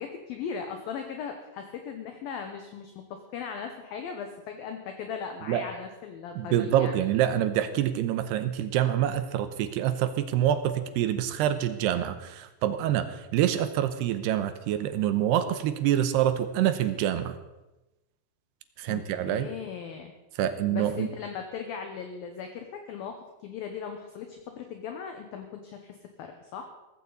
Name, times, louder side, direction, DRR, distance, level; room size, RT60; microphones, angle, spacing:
voice 1, 0.0-6.9 18.9-20.1 20.7-26.6, left 6 dB, 70° left, 5 dB, 2.4 m, -38 dB
voice 2, 6.4-17.4 18.8-19.5 20.4-21.1, right 11 dB, 80° right, 11 dB, 2.6 m, -26 dB
17.5 x 15.5 x 4.1 m, 1.0 s
omnidirectional pair, 5.2 m